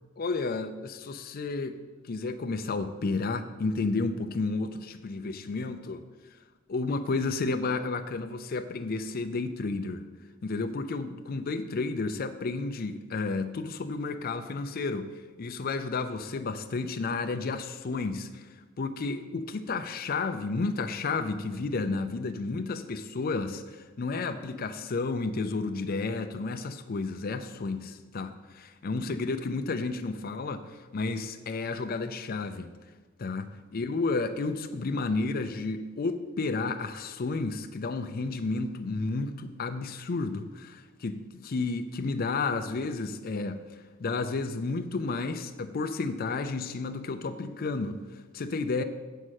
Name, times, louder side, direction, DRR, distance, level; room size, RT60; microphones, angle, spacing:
voice 1, 0.2-1.8 2.0-6.0 6.7-10.0 10.4-18.5 18.8-32.7 33.2-43.6 44.0-48.8, left 3 dB, 45° left, 7 dB, 0.5 m, -32 dB
7.4 x 5.5 x 6.4 m, 1.3 s
head